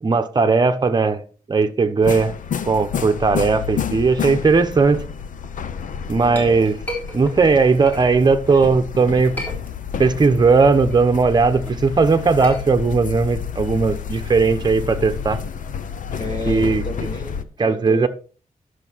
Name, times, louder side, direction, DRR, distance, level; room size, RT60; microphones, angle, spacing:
voice 1, 0.0-1.2 1.5-2.3 2.7-5.0 6.1-6.7 7.1-9.3 10.0-15.4 16.5-16.8 17.6-18.1, right 4 dB, 30° right, 1.0 m, -17 dB
sound 1, 2.0-17.4, left 7 dB, 65° left, 0.7 m, -30 dB
voice 2, 6.1-6.7 16.2-18.1, equal, 30° left, 1.4 m, -32 dB
Chink clink, 6.4-8.7 9.1-10.2 10.5-14.6, equal, 10° left, 3.7 m, -36 dB
10.5 x 6.5 x 4.6 m
wide cardioid pair, 145°, 14 cm